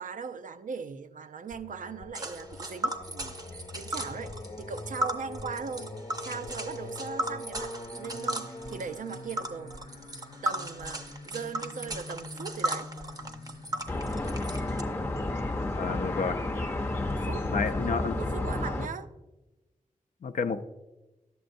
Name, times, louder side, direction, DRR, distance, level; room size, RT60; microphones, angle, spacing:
voice 1, 0.0-4.3 4.6-5.9 6.2-9.7 10.4-12.9 17.1-19.1, right 5 dB, 70° right, 11 dB, 0.4 m, -39 dB
Singing, 1.5-16.2, left 2 dB, 45° left, 0.9 m, -44 dB
Tick, 2.1-14.8, right 2 dB, 30° right, 0.6 m, -36 dB
sound 1, 13.9-18.9, left 2 dB, 15° left, 0.6 m, -31 dB
voice 2, 15.8-16.4 17.5-18.2 20.2-20.6, left 5 dB, 70° left, 9 dB, 0.4 m, -30 dB
11.0 x 7.8 x 2.6 m, 1.1 s
wide cardioid pair, 105°, 14 cm